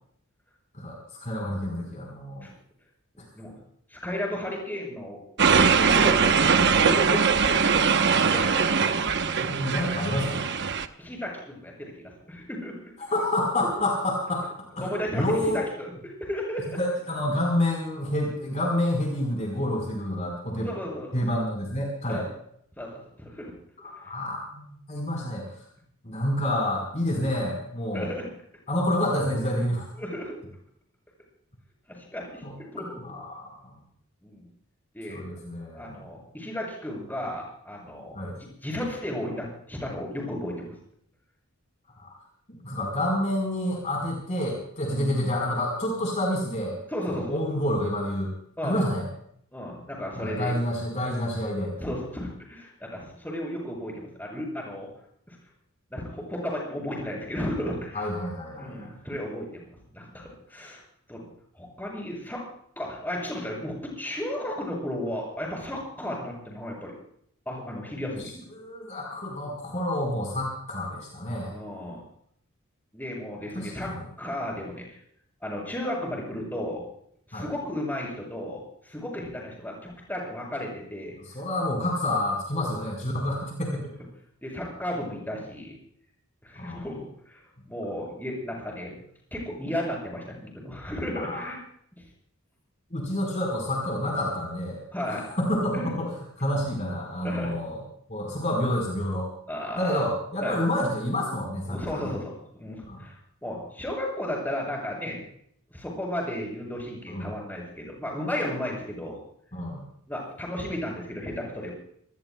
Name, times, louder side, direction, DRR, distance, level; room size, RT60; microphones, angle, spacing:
voice 1, 0.7-2.5 9.5-10.5 13.1-14.5 14.7-15.6 16.8-20.7 21.1-22.2 23.8-25.4 26.0-28.1 28.7-29.9 32.4-32.5 33.0-33.7 35.1-36.0 38.1-38.4 42.0-42.1 42.6-46.8 47.1-48.3 48.6-49.0 50.2-51.7 57.9-58.9 68.5-71.5 73.5-74.0 77.3-77.5 81.2-83.9 86.6-86.9 91.2-91.5 92.9-97.8 98.1-99.3 99.8-102.1 102.9-103.0 107.1-107.3 109.5-109.8, left 1 dB, 35° left, -1 dB, 4.3 m, -28 dB
voice 2, 3.9-5.2 5.7-7.6 8.3-8.6 8.9-9.0 10.6-10.7 11.0-11.9 12.3-12.7 14.8-16.8 20.6-21.1 22.1-22.2 22.8-23.5 27.9-28.3 30.0-30.4 31.9-33.1 34.2-34.5 34.9-35.2 35.7-38.2 38.6-40.7 44.8-45.0 46.9-47.4 48.6-48.8 49.5-50.5 51.8-54.9 55.3-55.4 55.9-58.1 58.5-59.7 59.9-60.8 61.1-62.4 62.8-66.9 67.4-68.3 71.5-72.0 72.9-75.0 75.4-76.8 77.3-81.2 82.5-82.7 84.4-85.7 86.4-88.9 89.3-91.6 92.0-92.1 94.9-95.3 95.7-95.9 97.2-97.5 99.5-100.0 100.4-100.6 101.7-105.2 105.7-109.2 110.1-111.8, left 1 dB, 10° left, -2 dB, 6.6 m, -34 dB
sound 1, 5.4-10.9, right 5 dB, 55° right, 0.9 m, -21 dB
27.0 x 20.0 x 2.3 m, 0.67 s
head